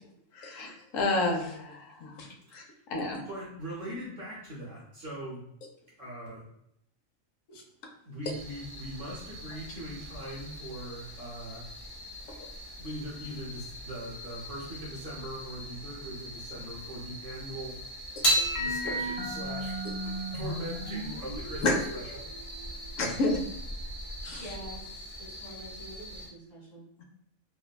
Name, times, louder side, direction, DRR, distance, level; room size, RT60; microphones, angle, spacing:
voice 1, 0.3-3.2 7.5-7.6 18.2-18.4 21.6-21.7 23.0-23.4 24.2-24.6 27.0-27.1, left 2 dB, 75° left, 2 dB, 0.9 m, -31 dB
voice 2, 2.7-5.4 6.0-6.4 8.0-11.7 12.8-17.9 18.6-19.8 20.3-21.7 21.9-22.2, right 1 dB, 65° right, -6 dB, 1.0 m, -41 dB
sound 1, 8.2-26.3, equal, 15° right, 0.6 m, -44 dB
sound 2, 18.2-24.8, right 1 dB, 55° left, 0.3 m, -33 dB
voice 3, 24.4-26.8, right 1 dB, 35° left, -7 dB, 1.5 m, -46 dB
3.2 x 2.1 x 2.2 m, 0.76 s
omnidirectional pair, 1.4 m